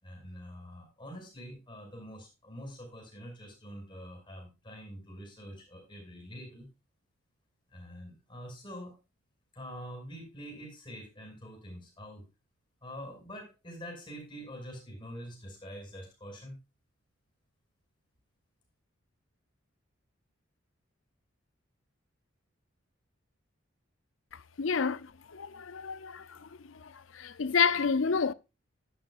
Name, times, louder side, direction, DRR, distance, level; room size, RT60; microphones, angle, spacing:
voice 1, 0.0-6.7 7.7-9.0 9.5-12.2 12.8-16.6, equal, 25° left, 5.9 m, -45 dB
voice 2, 24.6-25.1 25.3-26.2 27.2-28.3, left 5 dB, 80° left, 0.6 m, -28 dB
11.5 x 11.5 x 2.4 m
head